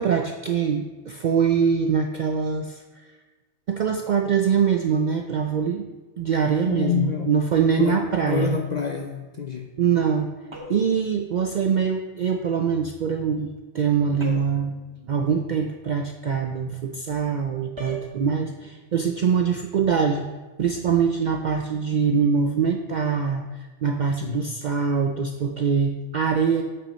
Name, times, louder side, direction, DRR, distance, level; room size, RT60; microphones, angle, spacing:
voice 1, 0.0-2.8 3.7-5.8 6.2-8.6 9.8-10.3 10.7-14.8 15.0-20.2 20.6-26.6, right 6 dB, 65° right, 4 dB, 0.4 m, -23 dB
voice 2, 6.7-7.3 7.8-9.7 24.2-24.4, left 8 dB, 60° left, 3 dB, 0.4 m, -28 dB
sound 1, 10.5-11.0 14.2-14.7 17.8-18.1, left 1 dB, 25° right, 1.1 m, -38 dB
7.9 x 6.1 x 4.1 m, 1.3 s
omnidirectional pair, 1.3 m